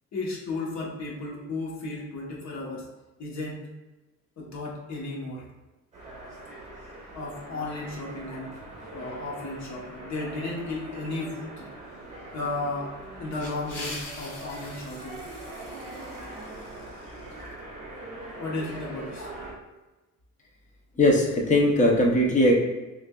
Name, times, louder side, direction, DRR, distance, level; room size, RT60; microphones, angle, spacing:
voice 1, 0.1-2.9 3.2-3.6 4.4-5.4 7.1-8.5 8.9-11.7 12.3-15.2 18.4-19.3, left 2 dB, 55° left, -2 dB, 1.0 m, -34 dB
sound 1, 5.9-19.5, right 2 dB, 20° right, 1.1 m, -42 dB
sound 2, 13.0-17.6, left 2 dB, 75° left, 1.3 m, -43 dB
voice 2, 21.0-22.5, left 1 dB, 20° left, 0 dB, 0.6 m, -20 dB
6.3 x 2.6 x 2.2 m, 1.1 s
wide cardioid pair, 170°, 33 cm